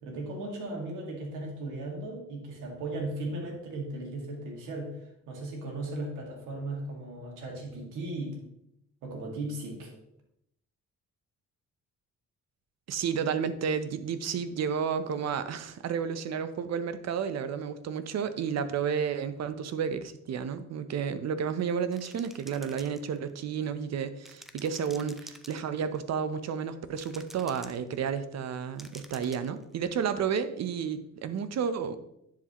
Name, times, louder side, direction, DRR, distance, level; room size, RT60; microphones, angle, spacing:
voice 1, 0.0-8.4 9.0-9.9, right 2 dB, 90° right, 0 dB, 2.1 m, -37 dB
voice 2, 12.9-32.0, right 7 dB, 60° right, 12 dB, 0.7 m, -31 dB
sound 1, 21.9-23.4 24.3-26.0 27.0-28.0 28.8-29.6, equal, ahead, 0.5 m, -49 dB
10.5 x 4.9 x 3.0 m, 0.77 s
cardioid pair, 90°, 30 cm